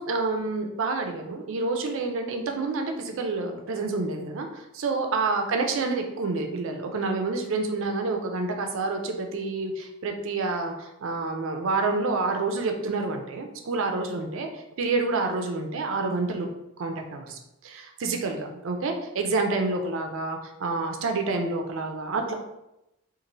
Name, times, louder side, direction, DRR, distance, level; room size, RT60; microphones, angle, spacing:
voice 1, 0.0-14.5 14.8-16.5 16.8-17.4 17.6-22.3, right 3 dB, 60° right, 4 dB, 0.4 m, -28 dB
3.0 x 2.5 x 2.6 m, 0.90 s
head